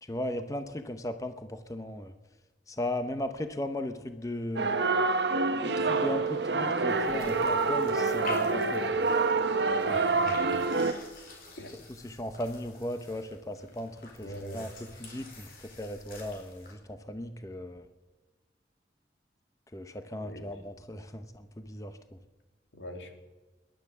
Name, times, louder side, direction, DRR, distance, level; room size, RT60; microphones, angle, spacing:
voice 1, 0.0-2.1 2.7-4.7 5.6-9.1 11.9-14.7 15.0-17.9 19.7-22.0, left 1 dB, 20° left, 8 dB, 0.8 m, -37 dB
sound 1, 4.6-10.9, right 3 dB, 75° right, 1.1 m, -27 dB
sound 2, 6.9-16.7, left 3 dB, 50° left, 4.4 m, -49 dB
voice 2, 9.9-10.6 11.6-11.7 14.2-14.7 20.2-20.5 22.7-23.2, equal, 90° left, 4 dB, 2.7 m, -43 dB
19.0 x 12.0 x 6.1 m, 1.2 s
head